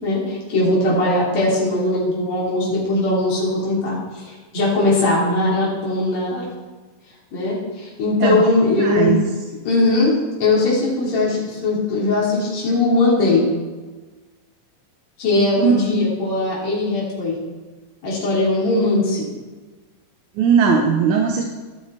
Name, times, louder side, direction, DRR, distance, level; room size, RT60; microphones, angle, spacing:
voice 1, 0.0-6.4 7.3-9.2 9.7-10.1 10.4-13.4 15.2-17.4 18.0-19.3, left 2 dB, 50° left, -6 dB, 4.1 m, -19 dB
voice 2, 8.2-9.2 15.6-15.8 20.4-21.4, right 6 dB, 75° right, 3 dB, 1.9 m, -18 dB
15.0 x 6.4 x 4.3 m, 1.3 s
omnidirectional pair, 4.0 m